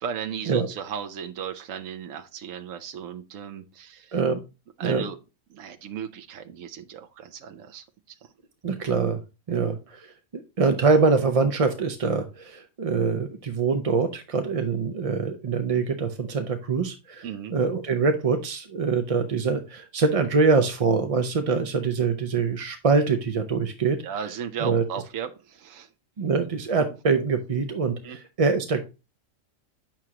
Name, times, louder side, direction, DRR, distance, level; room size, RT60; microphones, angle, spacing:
voice 1, 0.0-4.1 4.8-5.2 5.5-7.8 17.2-17.5 24.0-25.9 28.0-28.2, right 8 dB, 75° right, 6 dB, 1.1 m, -35 dB
voice 2, 8.6-9.2 9.5-10.1 10.3-24.0 24.6-24.8 26.2-28.8, right 4 dB, 40° right, 7 dB, 0.5 m, -24 dB
8.8 x 6.1 x 2.9 m, 0.28 s
omnidirectional pair, 1.4 m